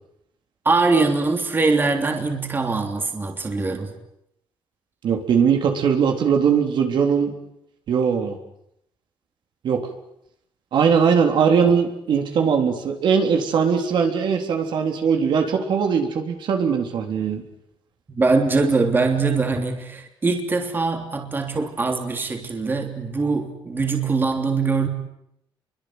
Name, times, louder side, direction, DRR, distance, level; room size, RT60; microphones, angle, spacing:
voice 1, 0.6-3.9 18.1-24.9, right 3 dB, 25° right, 4 dB, 3.2 m, -22 dB
voice 2, 5.0-7.3 7.9-8.4 9.6-9.8 10.7-17.4, right 6 dB, 65° right, 3 dB, 3.7 m, -20 dB
28.0 x 23.5 x 8.1 m, 0.79 s
cardioid pair, 130°, 9 cm